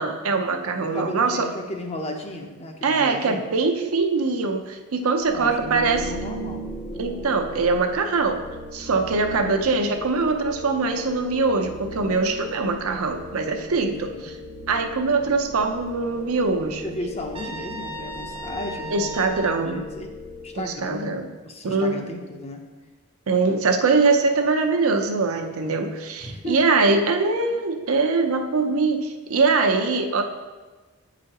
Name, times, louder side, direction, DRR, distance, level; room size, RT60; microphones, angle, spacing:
voice 1, 0.0-1.5 2.8-6.1 7.0-8.4 8.7-14.4 14.7-16.9 18.9-19.8 20.6-21.3 21.6-21.9 23.3-30.2, right 4 dB, 75° right, 5 dB, 0.6 m, -22 dB
voice 2, 0.8-3.4 5.3-6.7 13.9-14.3 16.8-19.1 19.7-20.1 20.4-21.1 21.4-22.6 26.2-26.6, left 1 dB, 30° left, 3 dB, 0.6 m, -34 dB
sound 1, 5.2-21.0, left 1 dB, 60° left, 1.5 m, -38 dB
Trumpet, 17.3-19.7, right 2 dB, 25° right, 0.6 m, -36 dB
8.1 x 5.0 x 2.9 m, 1.2 s
head